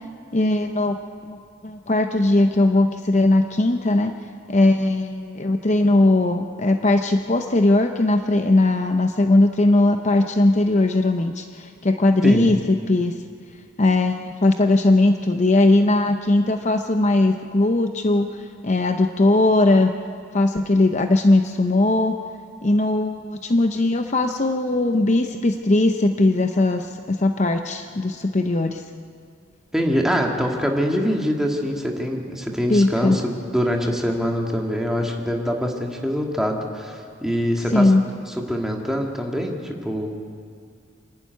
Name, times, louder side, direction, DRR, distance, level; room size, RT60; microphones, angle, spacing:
voice 1, 0.3-1.0 1.3-1.4 1.6-4.2 4.5-13.2 13.8-19.9 20.3-22.2 22.6-28.8 32.7-33.2 37.7-38.1, left 2 dB, 35° left, 6 dB, 0.7 m, -19 dB
voice 2, 29.7-37.9 38.5-40.2, equal, ahead, 0 dB, 1.9 m, -24 dB
26.5 x 11.5 x 9.4 m, 2.2 s
head